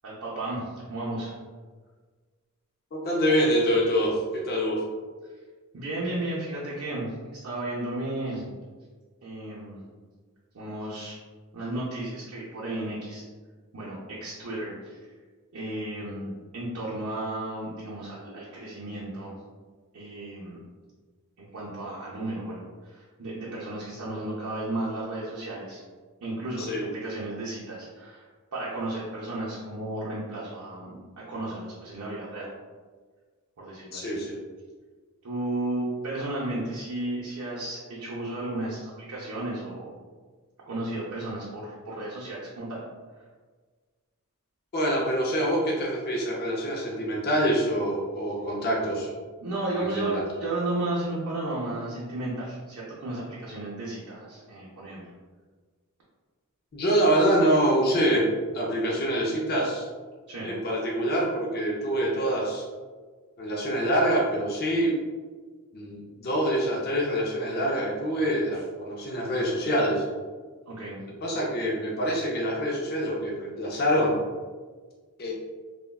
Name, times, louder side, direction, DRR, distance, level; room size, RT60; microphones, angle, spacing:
voice 1, 0.0-1.4 5.7-8.5 9.2-9.9 10.5-11.2 11.5-13.2 13.7-15.1 15.5-19.4 19.9-20.6 21.4-25.8 26.2-32.5 33.6-34.2 35.2-39.9 40.7-42.9 49.4-55.1 60.3-60.5 70.7-71.0, right 1 dB, 70° right, -6 dB, 0.6 m, -33 dB
voice 2, 2.9-4.8 26.6-26.9 33.9-34.4 44.7-49.1 49.8-50.2 56.7-58.3 58.5-59.9 60.4-62.6 63.4-65.0 65.7-70.0 71.2-74.2 75.2-75.3, equal, 45° left, -3 dB, 0.4 m, -25 dB
3.4 x 2.1 x 2.2 m, 1.5 s
head